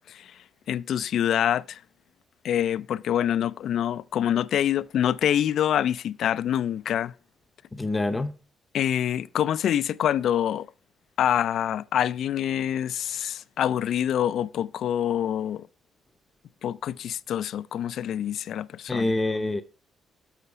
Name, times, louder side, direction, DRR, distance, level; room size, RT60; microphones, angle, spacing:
voice 1, 0.7-1.8 2.4-7.1 8.7-10.7 11.2-15.7 16.6-19.1, left 10 dB, 70° left, 0.3 m, -26 dB
voice 2, 7.7-8.3 18.9-19.6, left 2 dB, 20° left, 0.6 m, -26 dB
6.9 x 5.6 x 4.7 m
cardioid pair, 90°, 0 cm